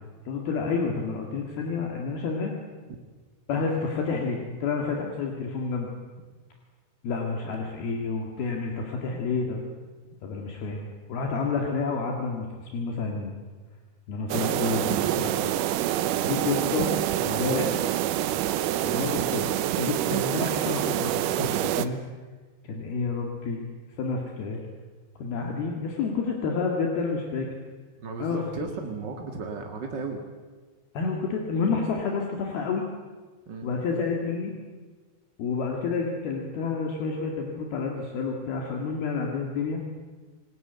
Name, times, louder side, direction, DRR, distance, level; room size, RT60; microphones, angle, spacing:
voice 1, 0.3-2.5 3.5-5.9 7.0-9.6 10.2-13.3 14.1-15.5 16.2-16.9 17.2-17.7 18.8-19.5 19.7-22.0 22.6-23.6 24.0-24.6 25.2-27.5 28.2-28.4 30.9-32.9 33.6-34.5 35.4-40.0, left 4 dB, 70° left, 1 dB, 3.9 m, -29 dB
sound 1, 14.3-21.9, right 12 dB, 75° right, 1.9 m, -26 dB
voice 2, 28.0-30.2 33.5-33.7, right 4 dB, 45° right, 3 dB, 1.4 m, -35 dB
28.0 x 19.0 x 8.1 m, 1.4 s
omnidirectional pair, 4.7 m